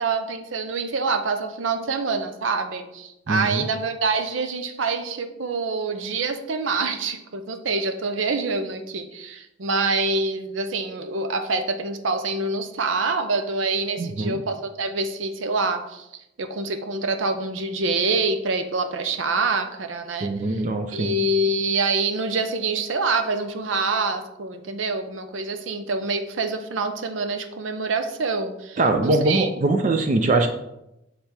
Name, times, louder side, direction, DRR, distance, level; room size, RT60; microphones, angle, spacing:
voice 1, 0.0-16.1 16.4-20.6 20.9-29.5, right 3 dB, 90° right, 8 dB, 0.7 m, -26 dB
voice 2, 3.3-3.6 14.0-14.4 20.2-21.1 28.8-30.5, right 2 dB, 40° right, 6 dB, 0.4 m, -22 dB
7.7 x 3.4 x 4.3 m, 0.88 s
head